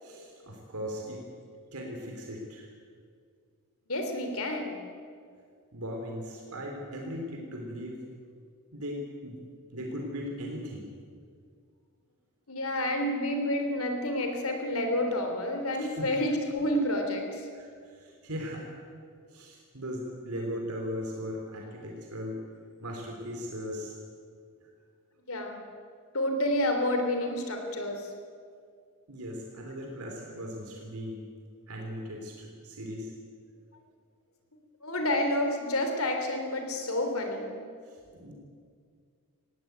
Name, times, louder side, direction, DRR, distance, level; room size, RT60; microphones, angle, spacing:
voice 1, 0.0-1.2 1.7-2.7 5.7-8.0 8.7-9.4 9.7-10.9 15.7-16.1 17.5-18.8 19.3-22.4 22.8-24.0 24.6-24.7 29.1-31.3 31.7-33.1 37.9-38.3, equal, 85° right, 1 dB, 3.4 m, -38 dB
voice 2, 3.9-4.8 12.5-17.5 25.3-25.6 26.1-28.1 34.8-37.6, left 1 dB, 70° left, 5 dB, 3.3 m, -29 dB
19.5 x 15.5 x 9.2 m, 2.2 s
head